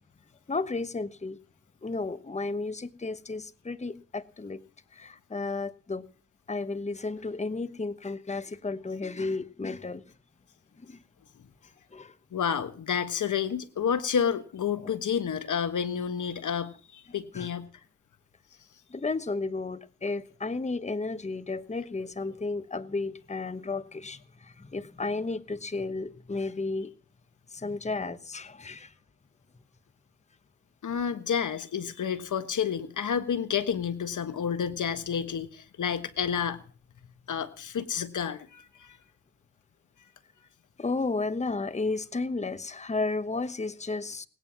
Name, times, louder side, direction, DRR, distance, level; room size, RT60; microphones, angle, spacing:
voice 1, 0.5-1.4 1.8-4.6 4.9-6.1 6.5-10.0 10.8-11.0 11.9-12.2 14.8-14.9 17.3-17.5 18.9-26.9 27.5-28.9 40.8-44.3, left 3 dB, 25° left, 1.1 m, -33 dB
voice 2, 12.3-17.7 30.8-36.6 37.3-39.0, left 7 dB, 85° left, 1.4 m, -30 dB
19.5 x 9.0 x 7.3 m
wide cardioid pair, 90°, 30 cm